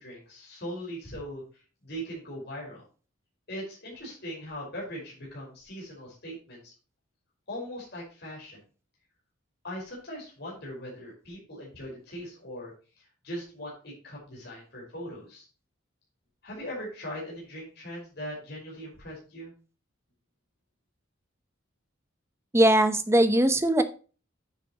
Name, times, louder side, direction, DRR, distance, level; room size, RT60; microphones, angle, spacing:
voice 1, 0.0-2.8 3.5-6.7 7.5-8.6 9.6-15.5 16.4-19.5, equal, 55° left, -3 dB, 5.0 m, -40 dB
voice 2, 22.5-23.8, right 1 dB, 15° right, 9 dB, 0.9 m, -20 dB
10.0 x 7.5 x 3.0 m, 0.35 s
head